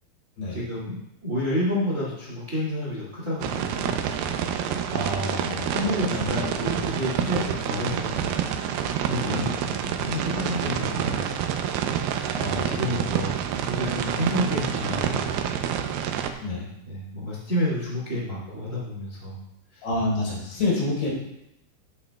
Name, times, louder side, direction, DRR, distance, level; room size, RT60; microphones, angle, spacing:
voice 1, 0.5-0.9 1.2-3.9 5.7-8.5 9.1-11.6 12.5-15.5 16.8-19.4 19.7-19.8, left 1 dB, 30° right, -5 dB, 1.7 m, -30 dB
sound 1, 3.4-16.3, right 9 dB, 80° right, 2.3 m, -28 dB
voice 2, 4.9-5.8 6.1-6.5 9.2-9.6 12.3-13.0 16.4-16.7 19.8-21.1, left 2 dB, 80° left, -5 dB, 6.3 m, -28 dB
13.5 x 8.4 x 2.3 m, 0.83 s
omnidirectional pair, 4.9 m